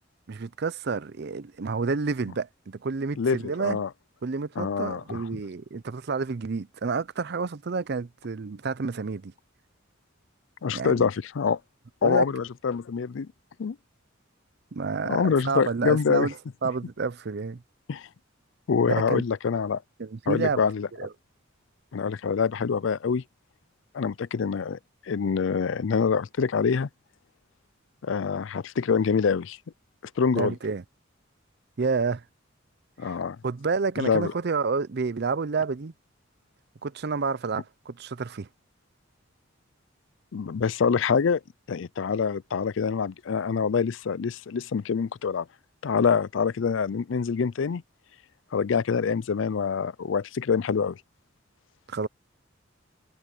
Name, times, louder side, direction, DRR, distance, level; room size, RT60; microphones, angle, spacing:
voice 1, 0.3-3.8 4.2-9.3 10.7-11.1 12.0-12.2 14.7-16.3 16.6-17.6 18.9-19.2 20.0-20.6 21.0-21.1 30.3-30.8 31.8-32.2 33.0-33.2 33.4-35.9 36.8-38.5 51.9-52.1, right 4 dB, 55° right, 0.5 m, -29 dB
voice 2, 3.2-3.9 4.6-5.4 10.6-11.6 12.0-13.3 13.6-13.8 15.0-16.3 17.9-18.1 18.7-19.8 20.3-20.9 21.9-23.2 23.9-24.8 25.1-26.9 28.0-29.6 30.2-30.5 33.0-33.4 34.0-34.3 40.3-41.4 41.7-45.5 45.8-47.8 48.5-51.0, left 6 dB, 65° left, 0.4 m, -25 dB
head